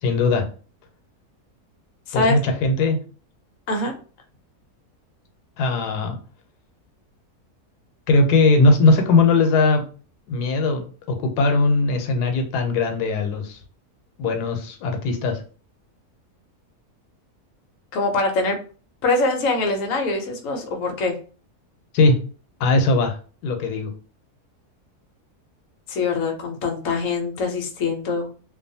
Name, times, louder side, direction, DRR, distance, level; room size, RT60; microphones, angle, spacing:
voice 1, 0.0-0.4 2.1-3.0 5.6-6.2 8.1-9.8 10.3-13.6 14.2-15.4 21.9-22.2 22.6-23.2 23.4-23.9, left 3 dB, 90° left, 5 dB, 1.1 m, -19 dB
voice 2, 17.9-18.6 19.0-21.1 25.9-28.3, left 3 dB, 65° left, 3 dB, 0.9 m, -23 dB
2.5 x 2.4 x 2.6 m, 0.38 s
omnidirectional pair, 1.6 m